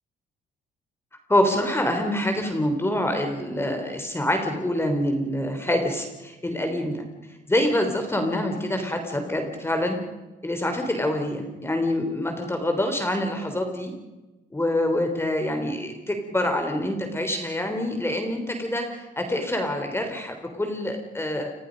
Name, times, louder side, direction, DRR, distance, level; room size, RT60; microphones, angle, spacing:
voice 1, 1.3-10.0 10.4-13.9 14.5-21.5, left 1 dB, 15° left, 5 dB, 3.5 m, -26 dB
29.0 x 22.0 x 5.3 m, 1.1 s
cardioid pair, 100°, 19 cm